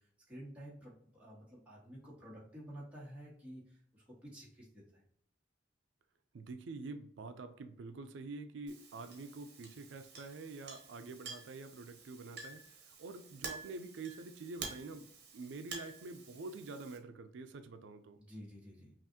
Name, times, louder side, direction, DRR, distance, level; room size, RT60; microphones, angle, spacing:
voice 1, 0.0-5.0 18.2-18.9, equal, 5° right, -6 dB, 1.4 m, -51 dB
voice 2, 6.3-18.2, right 3 dB, 90° right, 9 dB, 0.4 m, -47 dB
Chink clink, 8.7-17.0, right 4 dB, 60° right, 1.0 m, -50 dB
5.7 x 2.5 x 2.7 m, 0.68 s
head